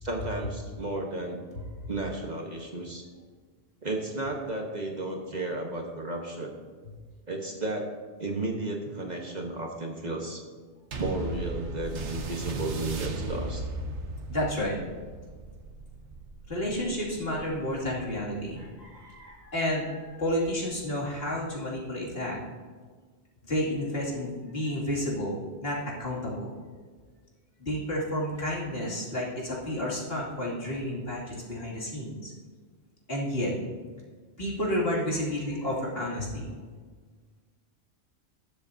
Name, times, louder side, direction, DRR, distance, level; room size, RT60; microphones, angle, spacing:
voice 1, 0.0-1.4 1.9-3.0 3.8-6.5 7.3-7.9 8.2-10.4 11.0-13.6, right 2 dB, 40° right, 0 dB, 1.2 m, -33 dB
sound 1, 10.9-19.7 20.4-20.5, right 3 dB, 85° right, 1.3 m, -37 dB
voice 2, 14.3-14.8 16.5-22.4 23.5-26.5 27.6-32.3 33.1-33.5 34.4-36.5, left 1 dB, 60° left, -5 dB, 2.7 m, -31 dB
20.0 x 7.4 x 2.7 m, 1.5 s
omnidirectional pair, 1.2 m